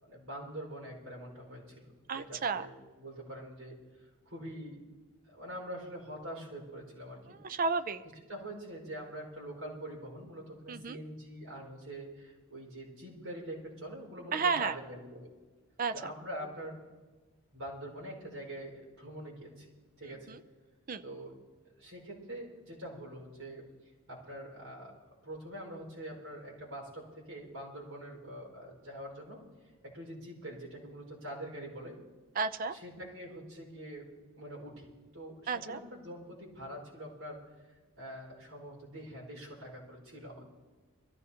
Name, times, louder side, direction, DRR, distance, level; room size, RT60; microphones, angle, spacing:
voice 1, 0.0-3.8 4.2-4.8 5.3-7.4 8.3-15.3 15.9-16.8 17.5-19.7 20.0-20.3 21.0-21.3 21.8-23.6 24.1-29.4 29.8-32.0 32.7-34.1 34.3-37.4 38.0-40.5, right 1 dB, 75° right, -2 dB, 5.0 m, -44 dB
voice 2, 2.1-2.7 7.4-8.0 10.7-11.0 14.3-14.8 15.8-15.9 20.3-20.4 20.9-21.0 32.4-32.8 35.5-35.8, right 5 dB, 40° right, 12 dB, 0.5 m, -32 dB
23.5 x 14.5 x 2.9 m, 1.3 s
head